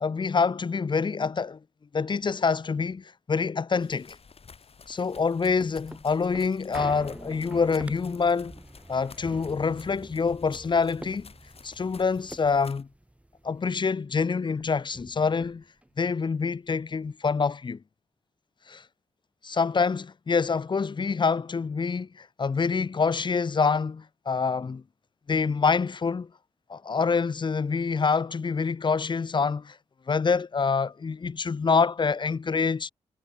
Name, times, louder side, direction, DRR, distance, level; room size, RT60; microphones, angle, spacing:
voice 1, 0.0-1.6 1.9-4.2 4.9-8.6 8.9-11.3 11.6-12.9 13.4-15.6 16.0-17.8 18.7-18.8 19.4-24.8 25.3-26.3 26.7-29.8 30.1-32.9, left 5 dB, 40° left, 0.7 m, -26 dB
sound 1, 3.8-12.8, left 5 dB, 55° left, 4.2 m, -52 dB
sound 2, 5.1-13.8 14.2-14.3 14.5-15.9 16.4-16.5, right 1 dB, 10° right, 3.8 m, -45 dB
cardioid pair, 80°, 12 cm